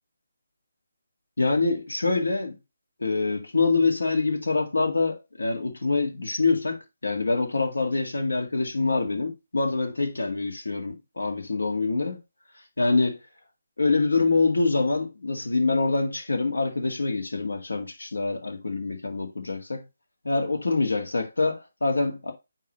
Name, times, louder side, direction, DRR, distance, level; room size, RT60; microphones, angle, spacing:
voice 1, 1.4-2.6 3.0-12.2 12.8-13.2 13.8-19.8 20.2-22.3, left 3 dB, 75° left, 2.0 m, -25 dB
9.2 x 3.1 x 4.0 m
figure-of-eight pair, 145°, 0 cm